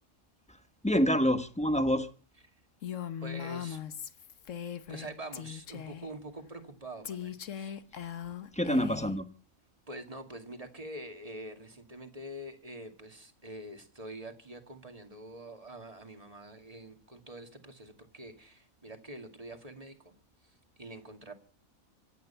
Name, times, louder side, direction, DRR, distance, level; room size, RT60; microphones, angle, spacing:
voice 1, 0.8-2.1 8.5-9.3, equal, 5° left, 1.0 m, -26 dB
Female speech woman speaking, 2.8-5.1 5.3-6.1 7.0-9.2, left 9 dB, 65° left, 1.3 m, -40 dB
voice 2, 3.2-3.8 4.9-7.8 9.9-20.2 20.8-21.3, right 1 dB, 25° right, 2.3 m, -45 dB
26.0 x 9.4 x 5.7 m
omnidirectional pair, 1.5 m